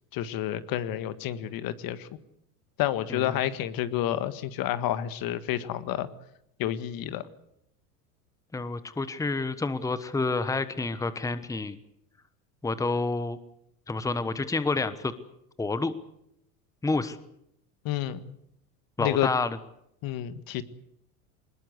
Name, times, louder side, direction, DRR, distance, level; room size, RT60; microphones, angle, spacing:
voice 1, 0.1-2.1 2.8-6.1 6.6-7.2 17.8-18.3 19.0-19.3 20.0-20.6, left 12 dB, 50° left, 13 dB, 1.7 m, -29 dB
voice 2, 8.5-11.8 12.6-13.4 13.9-15.1 15.6-15.9 16.8-17.2 19.0-19.6, left 3 dB, 5° left, 13 dB, 1.2 m, -29 dB
21.5 x 20.0 x 8.1 m, 0.77 s
hypercardioid pair, 95°, 46 cm